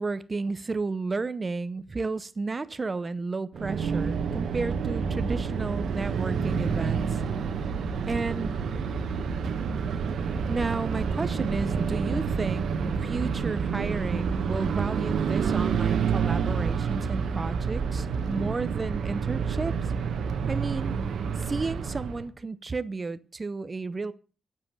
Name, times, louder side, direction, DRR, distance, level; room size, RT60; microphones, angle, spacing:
voice 1, 0.0-7.2 8.1-8.6 10.5-19.7 20.5-20.9 21.4-24.1, right 3 dB, 30° right, 0.7 m, -32 dB
sound 1, 3.5-22.3, right 6 dB, 85° right, 1.3 m, -28 dB
9.2 x 7.8 x 6.6 m
wide cardioid pair, 140°, 0 cm